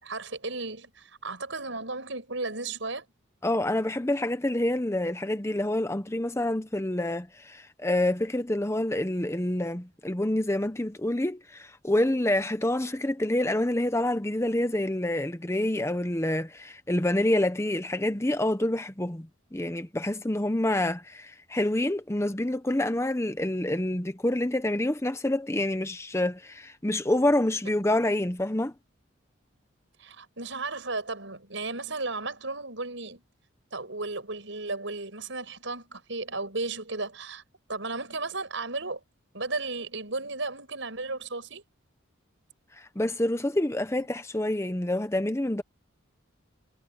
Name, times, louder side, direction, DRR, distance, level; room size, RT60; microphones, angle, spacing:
voice 1, 0.0-3.1 30.0-33.2 33.7-37.4 37.7-39.0 39.3-41.6, right 3 dB, 65° right, 6.8 m, -34 dB
voice 2, 3.4-28.7 42.7-45.6, left 1 dB, 15° left, 0.8 m, -27 dB
head